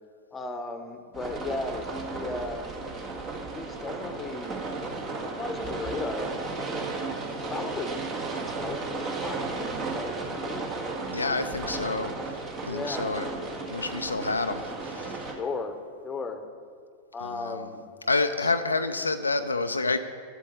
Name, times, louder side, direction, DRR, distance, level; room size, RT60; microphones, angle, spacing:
voice 1, 0.3-2.7 3.5-4.9 5.2-6.8 7.5-11.7 12.7-13.2 15.3-15.8 16.0-16.4 17.1-17.8 18.4-18.5, left 3 dB, 15° left, 8 dB, 1.1 m, -36 dB
sound 1, 1.1-15.3, right 3 dB, 30° right, 1.8 m, -34 dB
voice 2, 11.1-13.3 13.7-15.2 17.2-17.7 18.1-20.0, left 3 dB, 80° left, 8 dB, 0.4 m, -29 dB
8.3 x 7.1 x 8.6 m, 2.2 s
figure-of-eight pair, 90°, 0 cm